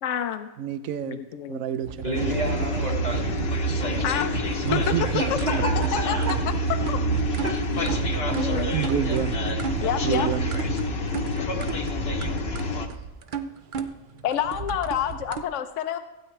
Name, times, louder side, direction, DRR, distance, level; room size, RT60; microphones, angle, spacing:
voice 1, 0.0-0.5 1.0-1.6 2.0-2.2 2.5-2.8 4.0-4.3 4.7-4.8 6.1-6.4 6.7-7.0 8.3-8.7 9.8-10.3 11.3-11.7 14.2-16.0, left 9 dB, 70° left, 7 dB, 0.9 m, -29 dB
voice 2, 0.6-2.3 4.6-5.2 6.2-6.3 8.7-9.4 10.0-10.5, right 9 dB, 90° right, 12 dB, 1.0 m, -28 dB
sound 1, 1.8-15.4, right 6 dB, 50° right, 0.6 m, -35 dB
voice 3, 2.0-3.3 3.8-4.6 5.2-6.3 7.4-7.6 8.3-9.3, right 1 dB, 30° right, -1 dB, 2.3 m, -32 dB
sound 2, 2.1-12.9, equal, 55° left, 1.1 m, -27 dB
15.5 x 8.9 x 3.2 m, 1.1 s
omnidirectional pair, 1.4 m